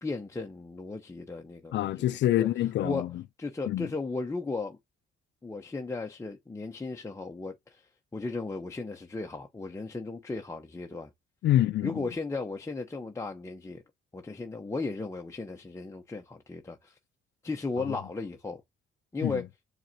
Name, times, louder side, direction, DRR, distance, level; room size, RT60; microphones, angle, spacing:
voice 1, 0.0-1.8 2.3-2.5 2.8-3.1 3.4-4.8 5.4-11.1 11.8-13.8 14.1-16.9 17.4-18.6 19.1-19.5, left 3 dB, 15° left, 0.7 m, -35 dB
voice 2, 1.7-3.2 3.7-3.9 11.4-12.0 17.8-17.9 19.2-19.4, left 13 dB, 65° left, 0.4 m, -26 dB
4.7 x 3.2 x 2.7 m
cardioid pair, 90°, 20 cm